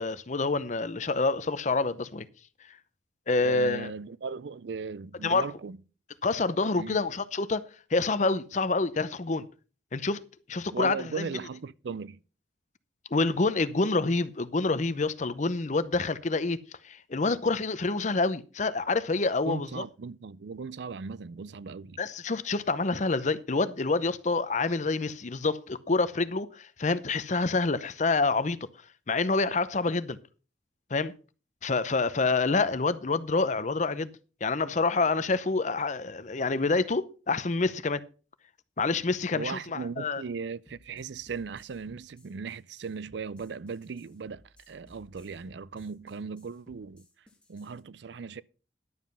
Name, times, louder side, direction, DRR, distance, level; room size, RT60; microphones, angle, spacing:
voice 1, 0.0-2.3 3.3-3.9 5.2-5.5 6.2-7.6 7.9-9.5 9.9-10.2 10.5-11.3 13.1-16.6 16.8-19.8 22.0-28.6 29.1-30.2 30.9-31.1 31.6-34.1 34.4-38.0 38.8-40.2, left 3 dB, 40° left, 0.7 m, -27 dB
voice 2, 3.4-5.8 6.8-7.0 10.7-12.2 19.4-22.0 39.3-47.1 47.5-48.4, right 5 dB, 70° right, 0.4 m, -38 dB
sound 1, 40.7-47.8, left 1 dB, 5° left, 2.4 m, -59 dB
11.0 x 7.4 x 5.5 m
head